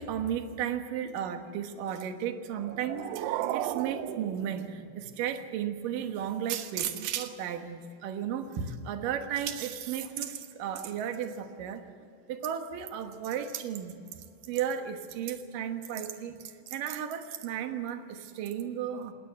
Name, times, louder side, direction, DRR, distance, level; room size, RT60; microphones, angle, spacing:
voice 1, 0.0-11.8 12.3-14.0 14.5-16.4 16.7-19.1, right 9 dB, 65° right, 6 dB, 2.7 m, -34 dB
sound 1, 2.5-5.4, right 13 dB, 90° right, 2.8 m, -35 dB
19.5 x 18.5 x 8.2 m, 2.5 s
omnidirectional pair, 4.7 m